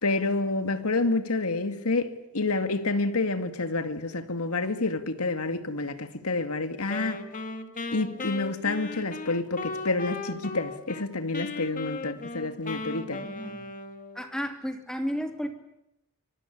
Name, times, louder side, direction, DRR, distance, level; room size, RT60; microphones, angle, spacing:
voice 1, 0.0-7.2 7.9-13.2, left 3 dB, 80° left, 2.2 m, -28 dB
Wind instrument woodwind instrument, 6.9-11.0 11.3-14.2, left 3 dB, 35° left, 2.0 m, -37 dB
voice 2, 13.2-13.7 14.1-15.5, equal, 5° left, 3.1 m, -33 dB
24.5 x 24.0 x 8.7 m
head